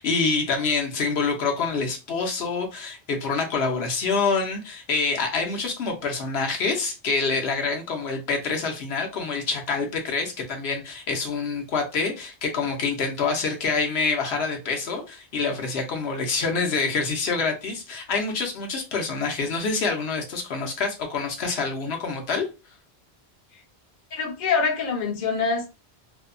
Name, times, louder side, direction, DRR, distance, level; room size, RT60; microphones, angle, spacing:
voice 1, 0.0-22.5, left 4 dB, 75° left, 0.9 m, -26 dB
voice 2, 24.1-25.7, left 5 dB, 50° left, 0.7 m, -25 dB
2.7 x 2.1 x 2.4 m
omnidirectional pair, 1.1 m